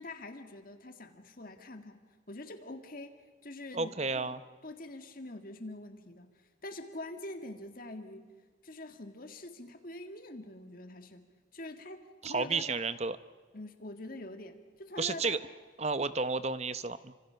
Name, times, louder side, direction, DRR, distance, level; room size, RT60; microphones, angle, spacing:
voice 1, 0.0-3.1 3.4-4.4 4.6-6.3 6.6-8.3 8.6-11.2 11.5-12.9 13.5-15.4, left 2 dB, 45° left, 7 dB, 1.9 m, -45 dB
voice 2, 3.7-4.4 12.2-13.2 15.0-15.4 15.8-17.1, right 4 dB, 35° right, 13 dB, 0.8 m, -32 dB
30.0 x 26.0 x 5.7 m, 1.5 s
head